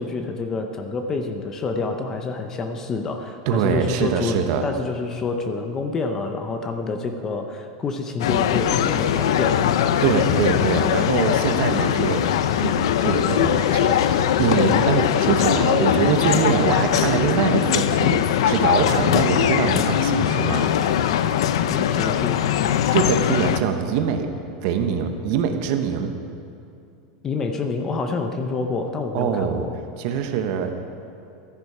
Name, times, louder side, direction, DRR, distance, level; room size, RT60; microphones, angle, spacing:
voice 1, 0.0-4.4 4.6-9.7 21.7-22.4 27.2-29.7, left 4 dB, 15° left, 5 dB, 0.6 m, -27 dB
voice 2, 3.5-4.7 10.0-12.7 13.0-20.7 22.9-24.3 24.6-26.1 29.1-29.6 30.0-30.7, right 7 dB, 45° right, 6 dB, 1.0 m, -23 dB
sound 1, 8.2-23.6, left 10 dB, 75° left, 0.5 m, -20 dB
13.5 x 10.5 x 4.9 m, 2.6 s
supercardioid pair, 175°, 3 cm